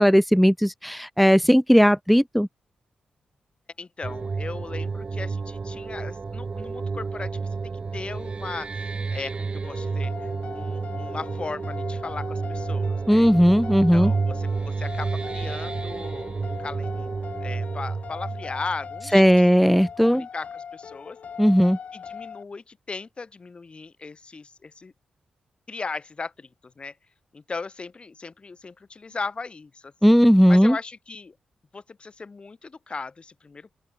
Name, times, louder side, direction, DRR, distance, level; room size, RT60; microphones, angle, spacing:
voice 1, 0.0-2.5 13.1-14.1 19.1-20.2 21.4-21.8 30.0-30.8, equal, ahead, 1.2 m, -17 dB
voice 2, 3.8-13.3 13.9-19.4 20.0-21.2 21.9-24.9 25.7-27.0 27.3-30.1 30.5-31.4 31.7-33.8, left 4 dB, 45° left, 6.0 m, -37 dB
sound 1, 4.0-19.5, right 4 dB, 45° right, 0.7 m, -30 dB
sound 2, 9.6-22.4, left 7 dB, 65° left, 1.6 m, -40 dB
open air
supercardioid pair, 50°, 3 cm